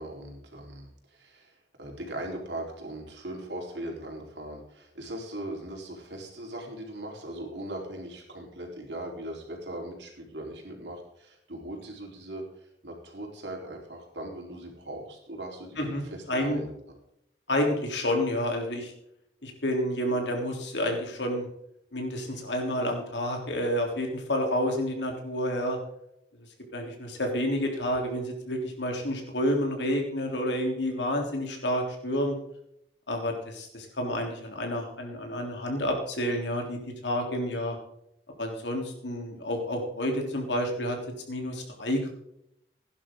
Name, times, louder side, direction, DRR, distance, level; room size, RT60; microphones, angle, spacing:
voice 1, 0.0-17.0, right 1 dB, 85° right, 0 dB, 4.1 m, -39 dB
voice 2, 15.8-16.6 17.5-18.9 19.4-21.5 21.9-25.8 26.7-32.3 33.1-37.8 38.4-41.0 41.3-42.1, equal, 85° left, 1 dB, 3.6 m, -29 dB
16.5 x 11.0 x 3.8 m, 0.76 s
head